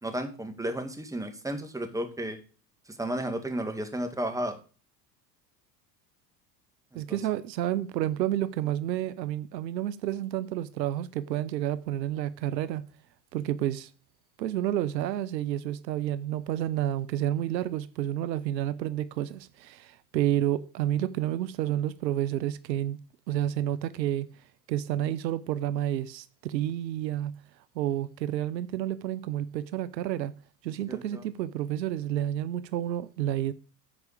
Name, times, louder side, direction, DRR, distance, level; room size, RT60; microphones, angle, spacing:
voice 1, 0.0-2.4 3.0-4.6 6.9-7.2 30.9-31.2, right 1 dB, 5° right, 1.9 m, -33 dB
voice 2, 6.9-12.8 13.3-13.9 14.4-23.0 23.3-24.3 24.7-27.3 27.8-30.3 30.6-33.5, right 12 dB, 85° right, 0.7 m, -30 dB
9.8 x 4.8 x 6.7 m
hypercardioid pair, 75°, 50 cm